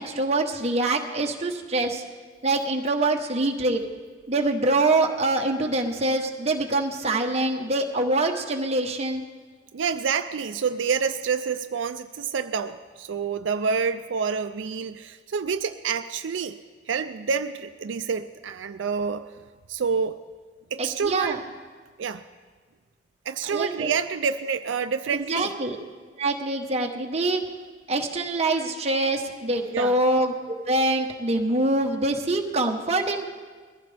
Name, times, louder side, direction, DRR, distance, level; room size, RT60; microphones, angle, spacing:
voice 1, 0.0-2.0 2.4-3.8 4.3-9.2 20.8-21.4 23.5-23.9 25.1-25.8 26.2-27.4 27.9-33.3, right 2 dB, 35° right, 2 dB, 1.2 m, -25 dB
voice 2, 9.7-16.6 16.9-19.3 19.7-20.2 20.7-21.4 22.0-22.2 23.3-25.5 29.7-30.0, right 6 dB, 85° right, 9 dB, 0.4 m, -28 dB
22.0 x 15.0 x 3.4 m, 1.5 s
head